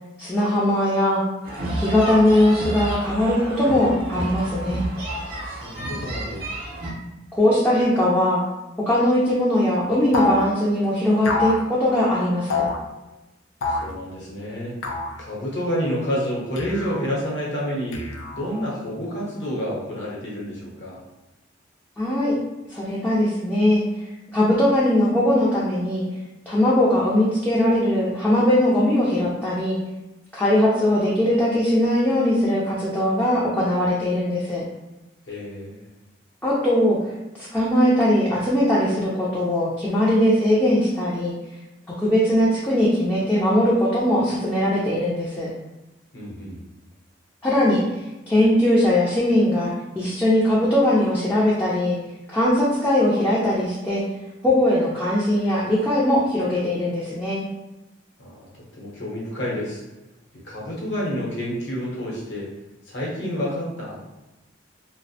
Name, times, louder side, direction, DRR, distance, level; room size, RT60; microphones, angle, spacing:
voice 1, 0.2-1.2 1.7-4.8 7.4-8.5 8.9-12.6 22.0-22.3 22.7-23.8 24.3-26.0 26.5-29.8 30.3-34.6 36.4-37.0 37.4-41.3 42.0-45.5 47.4-47.8 48.3-52.0 52.3-54.0 54.4-57.4, left 1 dB, 10° left, -8 dB, 0.3 m, -20 dB
sound 1, 1.4-6.9, right 1 dB, 50° right, 0.5 m, -30 dB
voice 2, 5.1-6.5 13.6-14.8 15.2-21.0 35.3-35.8 46.1-46.6 58.2-58.5 58.7-59.8 60.4-62.5 62.9-64.0, equal, 60° left, -5 dB, 0.8 m, -29 dB
sound 2, 10.1-10.5 11.2-11.6 12.5-12.8 13.6-13.9 14.8-15.2 16.6-17.1 17.9-18.6, left 3 dB, 90° left, 0.4 m, -26 dB
2.4 x 2.1 x 2.7 m, 1.0 s
head